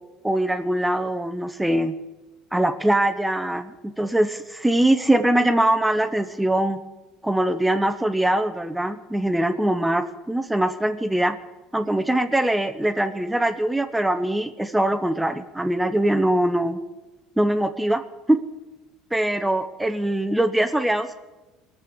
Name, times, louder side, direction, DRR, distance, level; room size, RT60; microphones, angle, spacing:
voice 1, 0.2-1.9 2.5-6.8 7.2-11.4 11.7-16.8 17.4-18.0 18.3-18.4 19.1-21.1, right 1 dB, 5° right, 8 dB, 0.9 m, -22 dB
19.5 x 6.9 x 6.2 m, 1.1 s
supercardioid pair, 90°, 0 cm